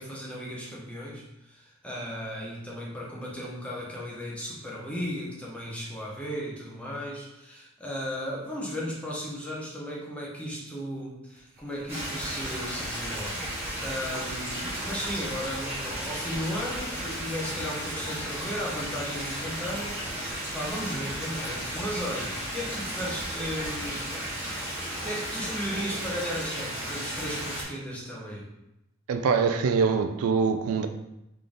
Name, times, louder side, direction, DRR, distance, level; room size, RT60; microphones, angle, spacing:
voice 1, 0.0-20.0 20.5-24.1 25.0-28.5, equal, 5° left, -4 dB, 0.9 m, -35 dB
sound 1, 11.3-24.7, right 1 dB, 45° right, 0.9 m, -47 dB
Stream, 11.9-27.6, equal, 10° right, 1.4 m, -34 dB
voice 2, 29.1-30.9, right 5 dB, 85° right, 7 dB, 0.4 m, -24 dB
3.7 x 3.3 x 3.8 m, 0.88 s
head